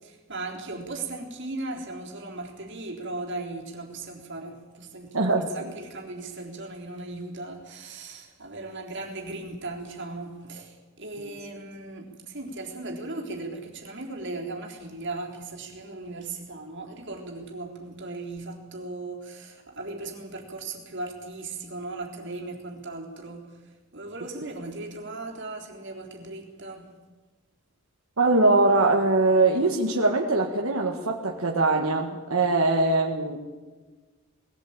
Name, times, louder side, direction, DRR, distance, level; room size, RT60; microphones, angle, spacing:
voice 1, 0.0-26.9, right 2 dB, 55° right, 1 dB, 3.8 m, -37 dB
voice 2, 5.1-5.7 11.2-11.3 28.2-33.4, right 2 dB, 75° right, 0 dB, 1.8 m, -22 dB
21.0 x 16.5 x 8.8 m, 1.3 s
head